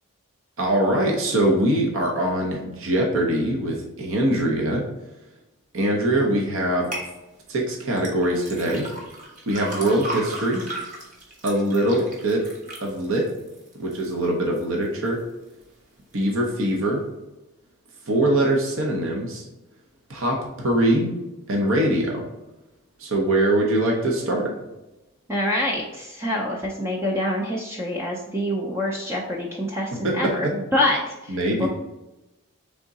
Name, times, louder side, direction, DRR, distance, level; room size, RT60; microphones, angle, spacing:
voice 1, 0.6-4.8 5.7-6.9 7.5-8.9 9.5-10.6 11.4-12.4 12.8-13.3 13.8-15.2 16.1-17.0 18.1-19.4 20.1-21.1 21.5-22.2 23.0-24.5 30.0-30.2 31.3-31.7, right 1 dB, 65° right, 0 dB, 0.8 m, -22 dB
sound 1, 6.9-7.1 8.0-14.1 14.6-15.1 15.6-15.7, right 1 dB, 35° right, 0.9 m, -36 dB
voice 2, 25.3-31.7, left 1 dB, 10° right, -2 dB, 0.4 m, -26 dB
3.6 x 3.6 x 4.0 m, 0.99 s
head